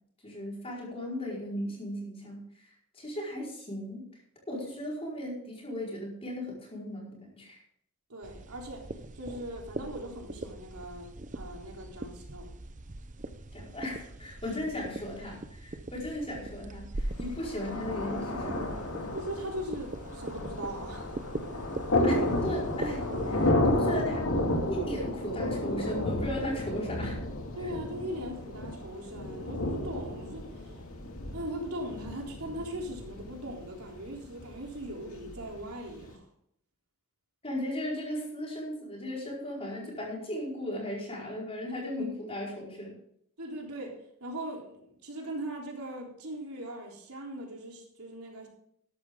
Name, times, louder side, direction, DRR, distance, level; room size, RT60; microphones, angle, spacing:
voice 1, 0.2-2.7 2.9-4.1 4.5-7.6 13.5-18.7 22.0-24.3 24.7-27.2 37.4-42.9, left 1 dB, 25° left, -3 dB, 4.8 m, -36 dB
voice 2, 8.1-12.5 19.1-21.1 27.6-30.8 31.3-36.2 43.4-48.5, right 1 dB, 85° right, 0 dB, 3.6 m, -40 dB
sound 1, 8.2-23.5, right 2 dB, 35° right, 0.8 m, -42 dB
Thunder, 17.2-36.1, left 1 dB, 80° left, 2.5 m, -32 dB
13.5 x 11.5 x 3.8 m, 0.71 s
head